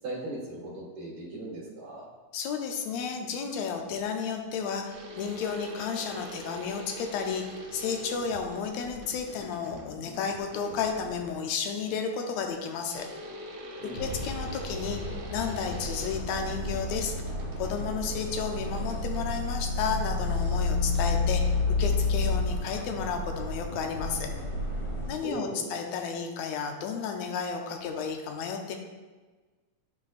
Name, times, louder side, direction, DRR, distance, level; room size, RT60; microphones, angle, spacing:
voice 1, 0.0-2.1 13.8-14.0 25.2-25.7, right 2 dB, 55° right, -9 dB, 2.4 m, -38 dB
voice 2, 2.3-13.1 14.0-17.1 17.6-21.5 21.8-24.3 25.1-28.8, left 6 dB, 80° left, 3 dB, 1.8 m, -32 dB
sound 1, 4.9-11.5 12.9-19.6, right 1 dB, 75° right, 2.6 m, -44 dB
sound 2, 13.9-25.1, left 3 dB, 45° left, 0.7 m, -30 dB
10.5 x 4.2 x 2.4 m, 1.3 s
omnidirectional pair, 3.5 m